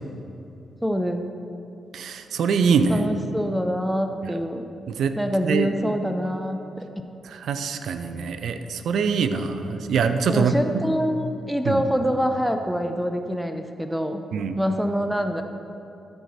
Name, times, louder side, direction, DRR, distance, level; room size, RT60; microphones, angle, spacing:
voice 1, 0.8-1.3 2.9-4.7 5.1-6.9 10.3-14.2 14.6-15.4, equal, 5° right, 7 dB, 0.6 m, -25 dB
voice 2, 1.9-3.0 4.9-5.2 5.4-5.7 7.3-10.5 11.6-11.8 14.3-14.6, right 6 dB, 70° right, 9 dB, 0.5 m, -24 dB
13.0 x 4.6 x 4.1 m, 2.8 s
hypercardioid pair, 40°, 0 cm